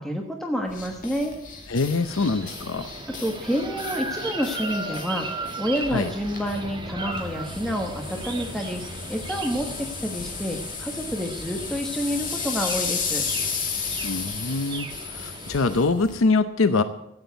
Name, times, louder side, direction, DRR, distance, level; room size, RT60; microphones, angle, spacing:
voice 1, 0.0-1.3 3.2-13.2, equal, ahead, 1 dB, 1.2 m, -29 dB
sound 1, 0.7-16.2, left 5 dB, 40° left, 2.4 m, -34 dB
voice 2, 1.7-2.9 5.9-6.1 14.0-16.8, left 3 dB, 85° left, 11 dB, 0.7 m, -24 dB
sound 2, 1.9-15.8, right 2 dB, 25° right, 1.4 m, -37 dB
sound 3, 6.3-12.9, left 1 dB, 75° right, 4.6 m, -45 dB
14.5 x 9.0 x 8.0 m, 0.86 s
head